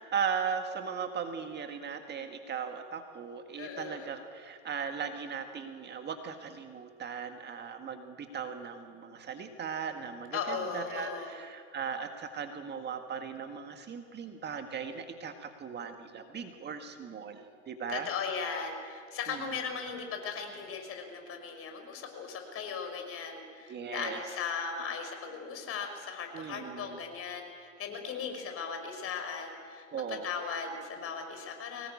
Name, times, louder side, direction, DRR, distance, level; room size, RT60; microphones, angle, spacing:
voice 1, 0.0-18.1 19.3-19.6 23.7-24.2 26.3-27.0 29.9-30.3, right 6 dB, 25° right, 6 dB, 1.7 m, -38 dB
voice 2, 3.6-4.1 10.3-11.3 17.9-31.9, left 5 dB, 35° left, 5 dB, 5.5 m, -38 dB
24.5 x 19.0 x 8.7 m, 2.1 s
hypercardioid pair, 100°, 38 cm